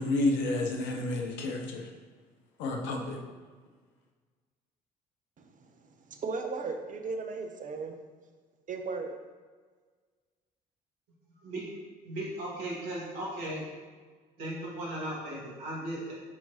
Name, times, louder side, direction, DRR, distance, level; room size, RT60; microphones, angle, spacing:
voice 1, 0.0-1.9 2.6-3.2, left 2 dB, 65° left, 2 dB, 1.0 m, -30 dB
voice 2, 5.4-5.7 6.1-7.9 8.7-9.1, right 4 dB, 40° right, 5 dB, 0.8 m, -36 dB
voice 3, 12.0-13.7 14.4-16.1, right 1 dB, 70° right, -4 dB, 1.8 m, -36 dB
8.5 x 4.6 x 2.8 m, 1.5 s
figure-of-eight pair, 50°, 21 cm